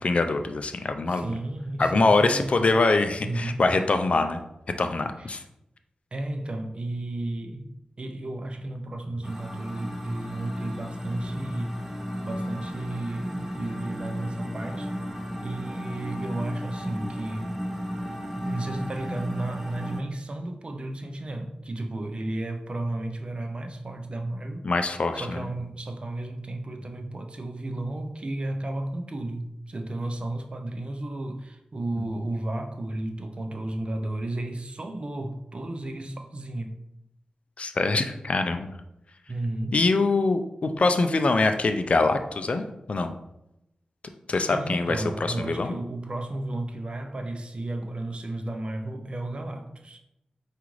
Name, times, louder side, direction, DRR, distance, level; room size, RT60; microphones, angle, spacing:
voice 1, 0.0-1.3 1.8-4.4 4.8-5.4 24.6-25.4 32.0-32.1 37.6-38.7 39.7-43.1 44.3-45.7, left 3 dB, 50° left, 0.4 m, -24 dB
voice 2, 1.1-2.7 3.2-3.6 5.2-5.3 6.1-7.7 8.0-11.7 12.2-14.9 15.4-17.6 18.4-24.7 25.1-36.8 39.3-39.8 44.5-50.0, right 2 dB, 45° right, 0.5 m, -33 dB
sound 1, 9.2-20.0, equal, 10° right, 0.7 m, -34 dB
4.8 x 2.5 x 3.1 m
cardioid pair, 50°, 3 cm